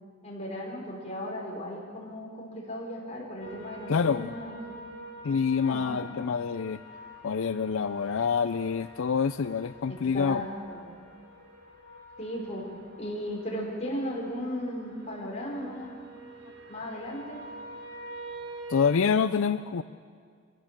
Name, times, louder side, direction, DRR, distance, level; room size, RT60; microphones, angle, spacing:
voice 1, 0.2-5.0 5.7-6.0 9.9-10.8 12.2-12.6 13.0-16.0 16.7-17.4, equal, 30° left, -3 dB, 5.0 m, -36 dB
sound 1, 3.4-18.9, right 1 dB, 55° right, 3.0 m, -46 dB
voice 2, 3.9-4.3 5.2-6.8 7.2-10.4 18.7-19.8, left 6 dB, 75° left, 12 dB, 0.5 m, -26 dB
25.0 x 16.5 x 7.6 m, 2.1 s
head